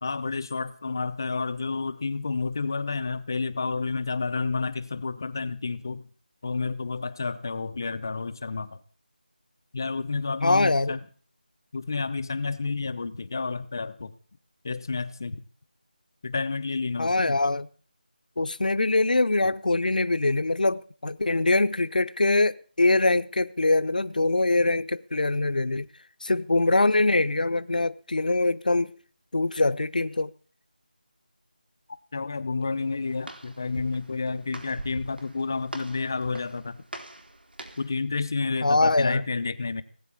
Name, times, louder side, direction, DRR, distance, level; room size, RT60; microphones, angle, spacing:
voice 1, 0.0-6.0 6.4-8.8 9.7-11.0 11.7-14.1 14.6-15.4 16.2-17.4 31.9-36.8 37.8-39.8, left 4 dB, 25° left, 0.7 m, -30 dB
voice 2, 10.4-11.0 17.0-17.7 18.4-25.9 26.2-28.9 29.3-30.3 38.6-39.2, left 2 dB, 60° left, 0.9 m, -23 dB
Walk footsteps, 32.6-38.0, right 1 dB, 85° right, 4.2 m, -43 dB
19.5 x 8.4 x 8.5 m
figure-of-eight pair, 175°, 5 cm